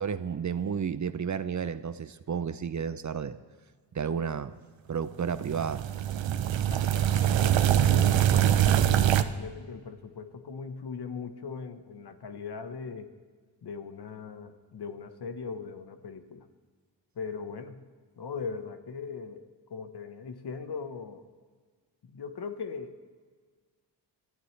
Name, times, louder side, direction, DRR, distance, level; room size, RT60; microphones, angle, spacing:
voice 1, 0.0-3.4 3.9-4.6 4.9-5.9 6.3-6.5, right 7 dB, 40° right, 13 dB, 0.7 m, -32 dB
sound 1, 5.4-9.2, right 11 dB, 85° right, 0.8 m, -23 dB
voice 2, 6.7-13.1 13.6-16.4 17.2-17.8 18.2-19.4 19.7-21.2 22.0-23.0, left 5 dB, 60° left, 8 dB, 1.4 m, -40 dB
24.5 x 14.5 x 3.4 m, 1.5 s
cardioid pair, 95°, 44 cm